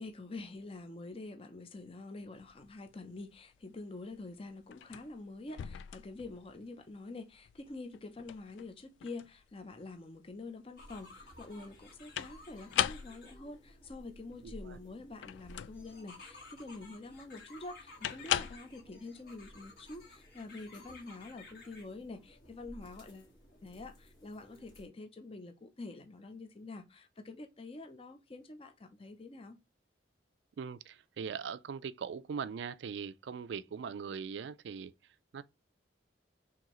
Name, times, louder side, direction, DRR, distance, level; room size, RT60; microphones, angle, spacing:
voice 1, 0.0-23.3 23.6-29.6, left 2 dB, 30° left, 0.6 m, -47 dB
sound 1, 2.4-18.6, left 10 dB, 90° left, 0.3 m, -40 dB
sound 2, 10.8-24.9, left 2 dB, 55° left, 1.7 m, -54 dB
voice 2, 14.4-14.8 30.6-34.9 35.3-35.4, right 6 dB, 75° right, 0.3 m, -41 dB
4.7 x 3.5 x 3.0 m
head